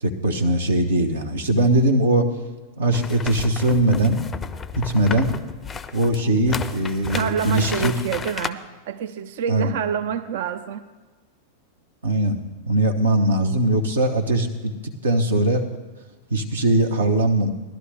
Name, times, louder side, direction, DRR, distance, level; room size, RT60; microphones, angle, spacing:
voice 1, 0.0-2.3 2.8-4.2 4.8-5.3 5.9-7.9 9.5-9.7 12.0-12.4 12.7-14.7 15.0-15.6 16.3-17.5, right 1 dB, 70° right, 4 dB, 1.0 m, -20 dB
sound 1, 2.9-8.5, left 5 dB, 20° left, 0.5 m, -33 dB
voice 2, 7.1-10.8, right 8 dB, 55° right, 11 dB, 0.4 m, -27 dB
18.0 x 12.0 x 3.3 m, 1.3 s
figure-of-eight pair, 90°, 0 cm